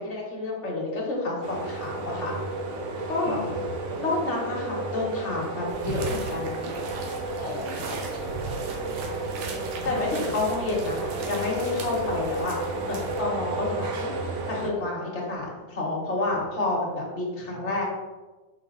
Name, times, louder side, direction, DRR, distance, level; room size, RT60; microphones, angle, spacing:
voice 1, 0.0-2.3 3.1-3.4 4.0-6.6 9.8-12.6 12.9-14.1 14.5-17.8, left 2 dB, 40° left, -2 dB, 1.4 m, -29 dB
sound 1, 1.4-14.7, right 2 dB, 65° right, 0.7 m, -32 dB
voice 2, 3.2-4.0 7.4-8.4 17.5-17.7, left 3 dB, 65° left, -1 dB, 0.7 m, -40 dB
sound 2, 5.7-13.2, right 4 dB, 80° right, 1.6 m, -37 dB
5.5 x 4.5 x 3.8 m, 1.2 s
omnidirectional pair, 2.0 m